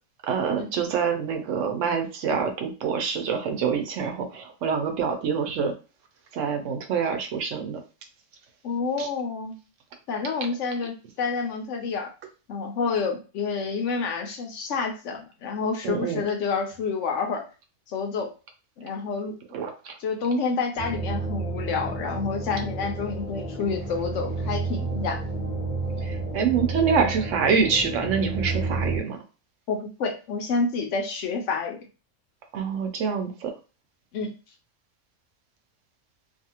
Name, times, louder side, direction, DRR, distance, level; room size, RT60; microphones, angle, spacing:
voice 1, 0.2-5.7 6.3-7.8 9.0-9.1 15.8-16.3 19.5-19.9 26.0-29.2 32.5-33.5, right 6 dB, 70° right, 5 dB, 0.9 m, -26 dB
voice 2, 8.6-9.6 10.1-12.1 12.5-17.5 17.9-18.3 18.8-19.4 20.0-25.2 29.7-31.8 34.1-34.3, left 4 dB, 70° left, 4 dB, 0.9 m, -28 dB
sound 1, 20.8-29.0, right 3 dB, 10° left, 0.7 m, -31 dB
2.6 x 2.4 x 2.8 m, 0.32 s
omnidirectional pair, 1.4 m